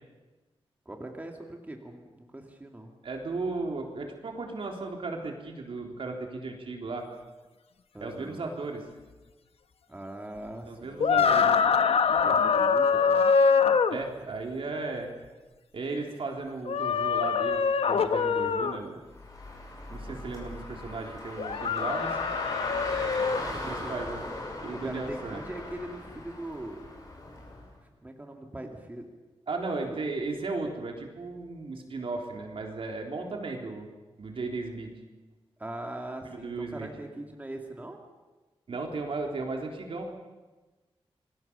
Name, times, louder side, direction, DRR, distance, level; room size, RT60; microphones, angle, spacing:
voice 1, 0.9-2.9 7.9-8.4 9.9-11.4 12.2-13.2 23.3-24.1 24.7-26.9 27.8-29.1 29.8-30.0 35.6-38.0, right 1 dB, 15° right, 2 dB, 2.4 m, -41 dB
voice 2, 3.0-7.1 8.0-8.8 10.7-11.5 13.9-15.1 15.7-17.6 17.9-19.0 19.9-22.2 23.7-24.2 24.6-25.4 29.5-33.9 34.2-34.9 36.2-36.9 38.7-40.2, right 3 dB, 65° right, 1 dB, 3.7 m, -35 dB
sound 1, 11.0-14.0 16.7-18.8 21.4-23.4, left 6 dB, 80° left, 1.1 m, -24 dB
Car, 19.1-27.7, left 1 dB, 35° left, 6.3 m, -39 dB
27.5 x 20.5 x 7.0 m, 1.2 s
wide cardioid pair, 140°, 10 cm